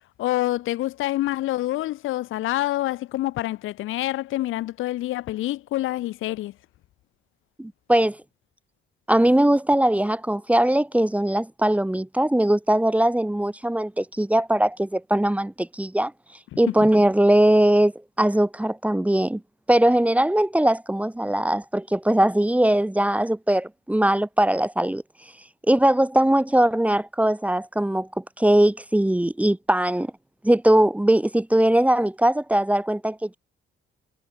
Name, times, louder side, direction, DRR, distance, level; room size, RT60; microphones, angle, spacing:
voice 1, 0.2-6.5 16.5-16.7, left 15 dB, 90° left, 3.8 m, -27 dB
voice 2, 7.6-8.2 9.1-16.1 16.6-17.9 18.2-19.4 19.7-25.0 25.7-30.1 30.4-33.4, right 1 dB, 5° right, 2.3 m, -20 dB
cardioid pair, 90°, 20 cm